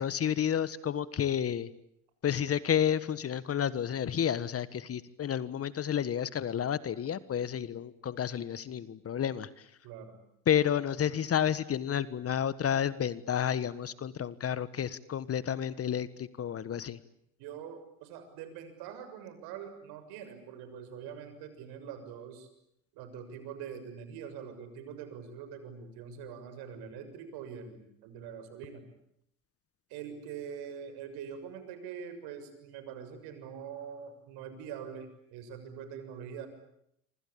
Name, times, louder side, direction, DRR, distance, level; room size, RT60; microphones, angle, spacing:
voice 1, 0.0-1.7 2.2-9.6 10.5-17.0, left 9 dB, 35° left, 16 dB, 1.4 m, -31 dB
voice 2, 17.4-22.5 22.9-28.8 29.9-36.5, right 7 dB, 65° right, 9 dB, 6.8 m, -44 dB
26.5 x 25.5 x 8.7 m, 0.76 s
hypercardioid pair, 85°, 41 cm